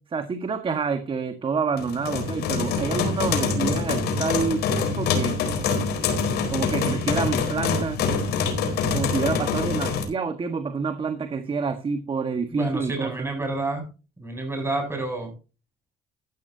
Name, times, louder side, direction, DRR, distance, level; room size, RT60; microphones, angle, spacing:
voice 1, 0.1-5.4 6.5-8.0 8.9-13.3, right 5 dB, 30° right, 8 dB, 1.5 m, -28 dB
sound 1, 1.8-10.0, left 5 dB, 75° left, 4.2 m, -25 dB
voice 2, 12.5-13.9 14.2-15.3, right 2 dB, 15° right, 3 dB, 7.6 m, -29 dB
14.5 x 12.0 x 2.7 m, 0.32 s
cardioid pair, 110°, 17 cm